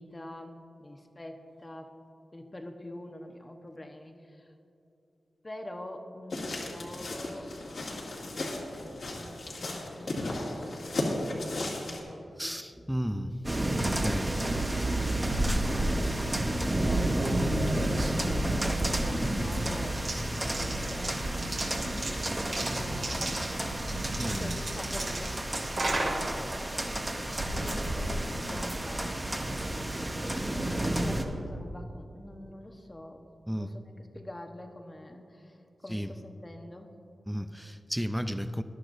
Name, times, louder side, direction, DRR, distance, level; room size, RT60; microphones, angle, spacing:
voice 1, 0.0-2.0 2.3-4.5 5.4-10.4 10.6-12.5 14.1-15.0 16.0-16.2 16.6-21.5 22.0-23.5 24.2-25.5 27.4-29.1 30.4-33.2 33.5-36.9, left 1 dB, 25° left, 4 dB, 1.1 m, -45 dB
sound 1, 6.3-12.0, left 2 dB, 75° left, 2.2 m, -35 dB
voice 2, 12.4-13.4 13.8-14.4 24.2-24.6 30.4-30.5 33.5-33.7 35.9-36.1 37.3-38.6, equal, ahead, 9 dB, 0.5 m, -33 dB
sound 2, 13.4-31.2, right 1 dB, 20° right, 1.0 m, -31 dB
sound 3, 15.1-28.9, right 1 dB, 65° right, 2.5 m, -36 dB
20.0 x 11.5 x 2.7 m, 2.7 s
wide cardioid pair, 100°, 0 cm